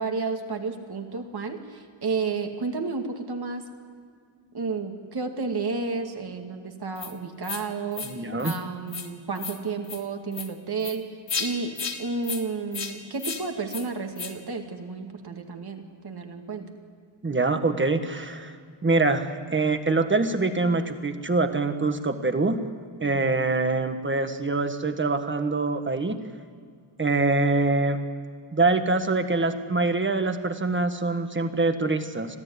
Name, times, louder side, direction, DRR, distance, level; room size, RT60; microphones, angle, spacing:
voice 1, 0.0-3.6 4.5-11.1 11.4-16.7 23.0-23.3, right 4 dB, 55° right, 4 dB, 2.4 m, -32 dB
sound 1, 7.0-7.1 7.4-7.6 7.9-8.1 8.4-8.6 8.9-9.1 9.4-9.6 9.8-10.0 10.3-10.5 10.8-10.9 11.3-11.5 11.8-12.0 12.2-12.4 12.7-12.9 13.2-13.4 13.7-13.8 14.2-14.3, left 5 dB, 60° left, 2.4 m, -33 dB
voice 2, 8.0-8.5 17.2-18.5 18.8-22.6 23.0-26.2 27.0-28.0 28.5-32.4, right 3 dB, 25° right, 8 dB, 1.5 m, -24 dB
25.5 x 16.0 x 9.6 m, 2.2 s
wide cardioid pair, 165°, 47 cm